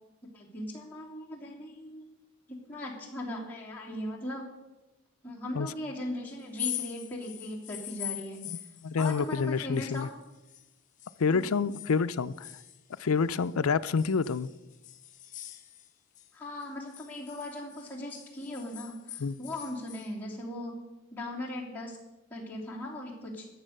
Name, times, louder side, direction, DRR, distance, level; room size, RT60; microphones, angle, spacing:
voice 1, 0.3-2.0 2.5-4.5 5.2-8.4 9.0-10.1 11.3-11.5 16.3-20.8 21.1-22.0 22.3-23.5, left 1 dB, 10° left, 3.0 m, -38 dB
sound 1, 6.4-10.7 11.0-13.5 14.0-16.3 16.6-20.1, left 12 dB, 35° left, 0.8 m, -43 dB
voice 2, 8.5-10.1 11.2-12.5 13.0-14.5 19.2-19.3, left 5 dB, 75° left, 0.5 m, -28 dB
14.0 x 8.7 x 6.6 m
head